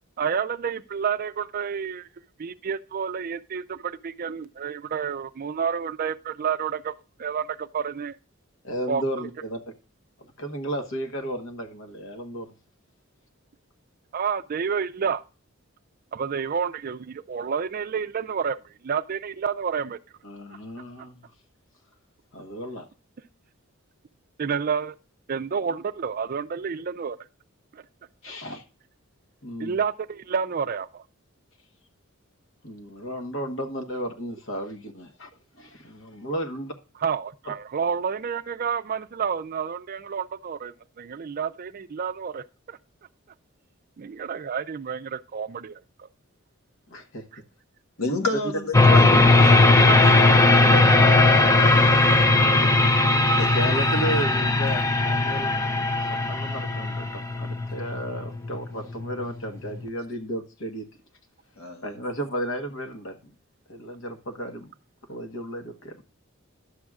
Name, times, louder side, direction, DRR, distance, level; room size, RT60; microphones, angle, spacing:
voice 1, 0.2-2.1 2.4-8.2 8.9-9.3 14.1-15.2 16.1-20.0 24.4-25.0 25.3-27.2 27.7-27.8 29.6-31.0 37.0-42.8 44.0-45.8, right 6 dB, 45° right, 0.4 m, -29 dB
voice 2, 8.6-9.6 10.2-12.5 20.2-21.3 22.3-22.9 28.2-28.6 29.4-29.8 32.6-36.7 37.5-37.6 46.9-47.2 48.4-48.5 53.5-55.5 56.0-60.9 61.8-63.3 63.7-64.7 65.1-66.0, right 1 dB, 65° left, 1.2 m, -34 dB
voice 3, 48.0-51.4 51.7-51.8 53.4-53.5 61.6-61.8, left 3 dB, 90° left, 1.5 m, -31 dB
sound 1, 48.7-59.9, left 2 dB, 15° left, 0.5 m, -18 dB
11.5 x 7.6 x 2.4 m
head